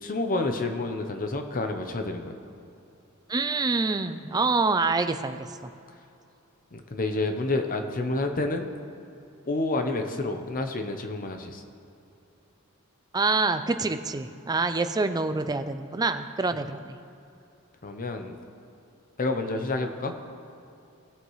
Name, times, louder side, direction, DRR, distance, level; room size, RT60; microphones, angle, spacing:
voice 1, 0.0-2.3 6.7-8.7 9.5-11.6 17.8-18.4 19.2-20.1, left 2 dB, 40° left, 6 dB, 0.8 m, -29 dB
voice 2, 3.3-5.7 13.1-16.9, right 3 dB, 20° right, 9 dB, 0.4 m, -26 dB
18.0 x 7.9 x 3.2 m, 2.7 s
head